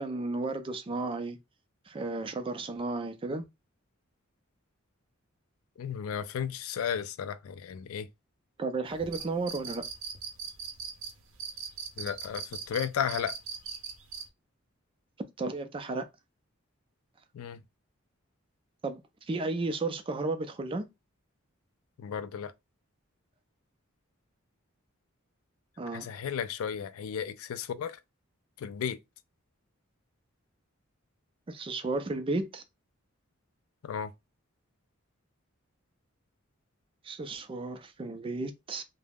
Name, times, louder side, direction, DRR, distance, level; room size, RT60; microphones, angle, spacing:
voice 1, 0.0-1.4 1.9-3.4 8.6-9.8 15.4-16.0 18.8-19.0 19.3-20.9 25.8-26.1 31.5-32.6 37.1-38.8, right 3 dB, 25° right, 0.3 m, -33 dB
voice 2, 5.8-8.1 12.0-13.4 17.3-17.6 22.0-22.5 25.9-28.0 28.6-29.0 33.8-34.1, left 8 dB, 80° left, 0.3 m, -34 dB
sound 1, 8.9-14.2, right 6 dB, 65° right, 0.6 m, -39 dB
2.3 x 2.0 x 3.3 m
head